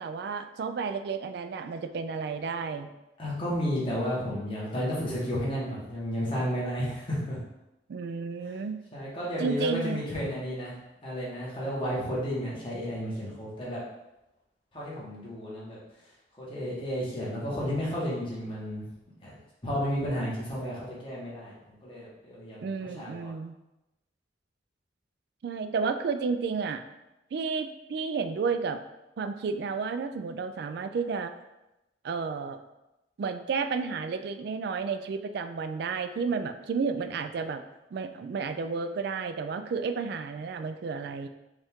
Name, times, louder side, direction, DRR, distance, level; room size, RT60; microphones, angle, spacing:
voice 1, 0.0-2.9 7.9-8.8 9.4-10.0 22.6-23.5 25.4-26.8 27.3-28.8 29.2-31.3 32.0-32.6 33.2-37.6 37.9-41.3, right 5 dB, 60° right, 9 dB, 0.3 m, -31 dB
voice 2, 3.2-7.4 8.9-10.8 11.0-13.8 14.7-15.8 16.4-18.8 19.2-19.3 19.6-23.3, equal, 30° left, -7 dB, 1.3 m, -32 dB
5.1 x 2.5 x 3.6 m, 0.96 s
head